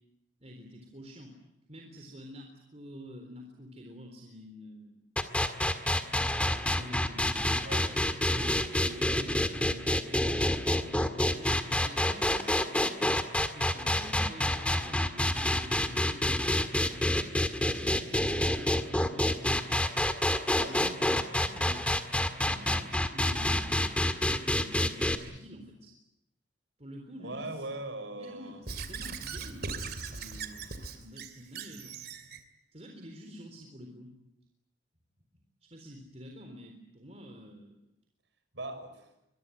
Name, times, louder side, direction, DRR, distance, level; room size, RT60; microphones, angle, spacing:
voice 1, 0.4-1.4 1.7-4.9 5.4-6.1 6.4-7.6 8.2-13.0 13.5-17.2 17.6-19.6 20.3-21.9 22.5-25.9 26.8-27.7 28.2-32.0 32.7-34.1 35.6-37.8, equal, 35° right, 2 dB, 3.8 m, -48 dB
sound 1, 5.2-25.2, left 1 dB, 5° left, 1.8 m, -28 dB
voice 2, 7.6-8.9 20.6-20.7 27.2-28.6 38.5-39.1, right 2 dB, 75° right, 8 dB, 6.1 m, -41 dB
Squeak / Writing, 28.7-32.4, right 4 dB, 55° right, 2.7 m, -39 dB
24.5 x 23.0 x 9.3 m, 0.88 s
head